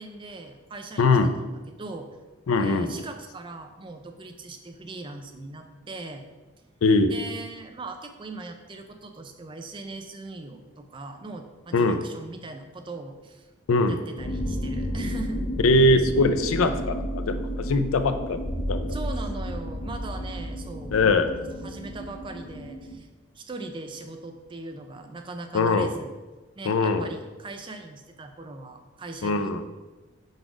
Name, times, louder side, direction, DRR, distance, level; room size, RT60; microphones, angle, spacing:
voice 1, 0.0-2.1 2.6-6.2 7.1-13.5 13.9-15.4 18.9-21.0 21.6-23.1 23.3-26.2 26.6-29.5, right 3 dB, 25° right, 6 dB, 0.4 m, -40 dB
voice 2, 1.0-1.3 2.5-2.9 6.8-7.1 11.7-12.0 13.7-14.0 15.6-18.4 18.7-19.0 20.9-21.3 25.5-25.9 26.6-27.1 29.2-29.6, left 2 dB, 85° left, 9 dB, 0.5 m, -21 dB
sound 1, 14.2-22.9, equal, 35° left, 0.6 m, -32 dB
4.7 x 4.0 x 5.0 m, 1.2 s
head